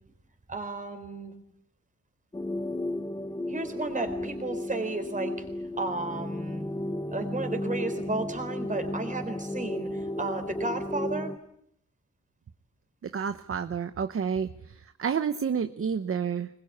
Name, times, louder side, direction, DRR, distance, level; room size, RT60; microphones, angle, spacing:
voice 1, 0.5-1.3 3.5-6.7 7.1-11.3, right 3 dB, 25° right, 7 dB, 4.0 m, -33 dB
sound 1, 2.3-11.4, left 1 dB, 15° left, 0.9 m, -34 dB
voice 2, 13.0-16.5, right 7 dB, 50° right, 10 dB, 0.9 m, -30 dB
25.5 x 21.0 x 8.6 m, 0.74 s
wide cardioid pair, 170°, 29 cm